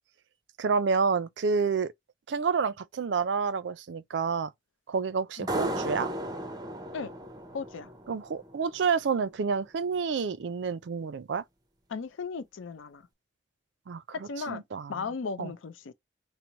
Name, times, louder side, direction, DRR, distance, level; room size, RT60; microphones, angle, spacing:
voice 1, 0.6-1.9 2.3-4.5 4.9-6.1 8.1-11.4 13.9-15.1 15.4-15.5, right 5 dB, 70° right, 0.4 m, -29 dB
sound 1, 5.5-8.8, right 1 dB, 20° right, 0.6 m, -35 dB
voice 2, 7.5-7.9 11.9-13.1 14.1-14.6 14.9-15.9, left 5 dB, 90° left, 0.5 m, -36 dB
4.5 x 2.0 x 3.9 m
head